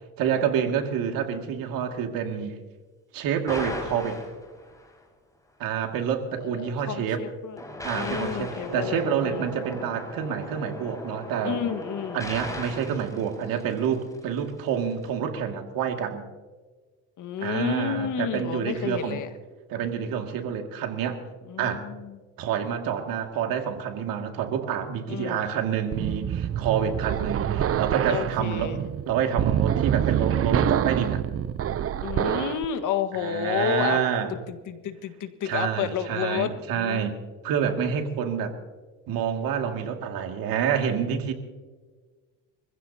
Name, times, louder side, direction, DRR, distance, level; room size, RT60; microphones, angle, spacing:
voice 1, 0.2-2.5 3.1-4.2 5.6-7.2 7.8-11.6 12.1-16.2 17.4-19.2 19.7-21.2 21.6-21.8 22.4-28.8 29.1-31.2 33.1-34.3 35.4-37.1 37.4-38.5 39.1-41.3, right 8 dB, 70° right, 4 dB, 2.4 m, -28 dB
sound 1, 3.5-4.9 7.6-14.1, left 1 dB, 10° left, 5.5 m, -37 dB
voice 2, 6.5-7.6 7.9-9.5 11.4-12.3 17.2-19.3 21.5-22.2 25.1-25.4 28.1-28.8 32.0-34.0 34.5-37.1, left 8 dB, 55° left, 8 dB, 1.7 m, -31 dB
sound 2, 25.9-32.7, right 10 dB, 40° right, 0.7 m, -26 dB
25.0 x 15.5 x 2.9 m, 1.3 s
supercardioid pair, 75°, 36 cm